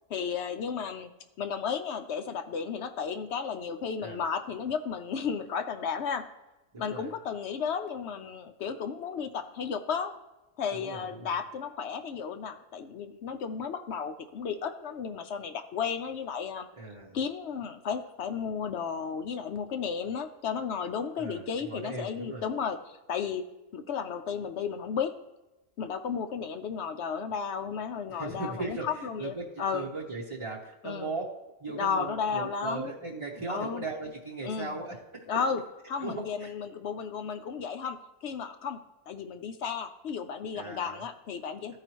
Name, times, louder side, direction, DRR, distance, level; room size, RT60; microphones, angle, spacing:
voice 1, 0.1-1.1 1.4-6.2 6.8-10.2 10.6-16.7 17.1-23.4 23.7-25.1 25.8-29.9 30.8-31.1 31.7-32.9 33.5-33.8 34.4-34.8 35.3-35.6 35.9-38.8 39.1-41.8, left 6 dB, 60° left, 8 dB, 0.7 m, -33 dB
voice 2, 6.7-7.1 10.7-11.3 16.8-17.2 21.2-22.4 28.1-31.2 31.6-35.3 36.0-36.5 40.5-41.0, right 3 dB, 25° right, -4 dB, 0.8 m, -38 dB
14.5 x 4.8 x 3.0 m, 1.0 s
omnidirectional pair, 1.5 m